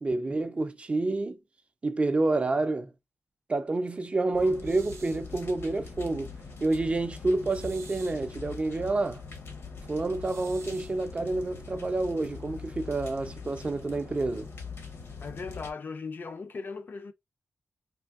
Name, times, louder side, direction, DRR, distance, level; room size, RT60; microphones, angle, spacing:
voice 1, 0.0-1.4 1.8-2.9 3.5-6.3 6.6-9.2 9.9-14.5, right 2 dB, 25° right, 0.3 m, -28 dB
sound 1, 4.3-15.7, left 5 dB, 65° left, 0.7 m, -43 dB
sound 2, 4.6-5.3 7.4-8.3 10.2-11.0, right 6 dB, 85° right, 0.5 m, -51 dB
voice 2, 15.2-17.1, left 4 dB, 45° left, 0.4 m, -38 dB
3.4 x 2.6 x 2.4 m
wide cardioid pair, 165°, 5 cm